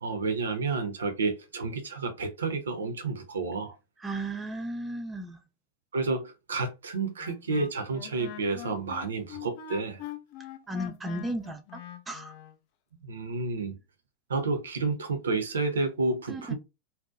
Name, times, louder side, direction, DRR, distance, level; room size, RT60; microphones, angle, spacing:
voice 1, 0.0-3.8 5.9-10.0 13.0-13.8 14.3-16.5, right 3 dB, 70° right, 0.5 m, -30 dB
voice 2, 4.0-5.4 10.7-11.8 12.1-12.3 16.3-16.5, right 1 dB, 15° right, 0.5 m, -35 dB
Wind instrument woodwind instrument, 7.2-12.5, left 11 dB, 45° left, 0.4 m, -43 dB
2.6 x 2.1 x 2.4 m
figure-of-eight pair, 90°, 0 cm